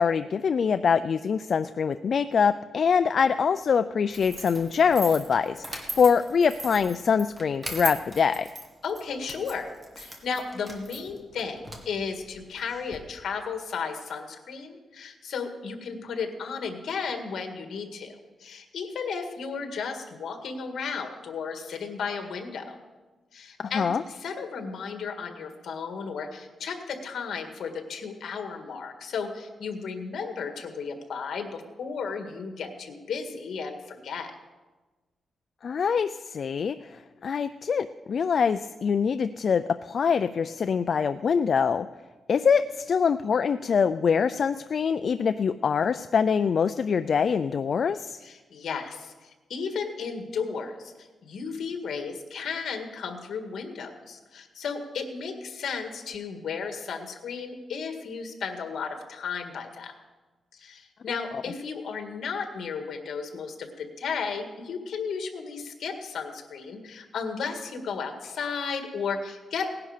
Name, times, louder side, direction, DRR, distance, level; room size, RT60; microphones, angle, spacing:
voice 1, 0.0-8.5 23.6-24.0 35.6-41.9 42.3-48.2, left 6 dB, 45° left, 10 dB, 0.3 m, -24 dB
sound 1, 4.1-13.0, right 1 dB, 20° right, 1.9 m, -40 dB
voice 2, 8.8-9.7 10.0-22.8 23.3-34.3 48.2-59.9 60.5-69.7, left 5 dB, 70° left, 5 dB, 1.8 m, -34 dB
18.0 x 10.5 x 5.0 m, 1.2 s
wide cardioid pair, 165°, 0 cm